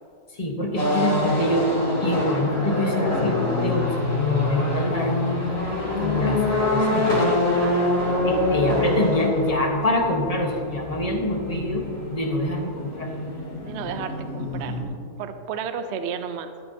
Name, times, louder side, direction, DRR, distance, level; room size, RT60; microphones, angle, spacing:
voice 1, 0.3-5.3 6.0-7.3 8.2-13.1, left 1 dB, 25° left, 1 dB, 1.2 m, -25 dB
sound 1, 0.7-14.8, left 1 dB, 50° left, 3.3 m, -25 dB
sound 2, 4.0-12.6, left 1 dB, 25° right, 1.7 m, -41 dB
voice 2, 13.6-14.8 15.2-16.5, right 7 dB, 60° right, 9 dB, 0.7 m, -32 dB
14.0 x 12.5 x 2.8 m, 2.3 s
omnidirectional pair, 1.7 m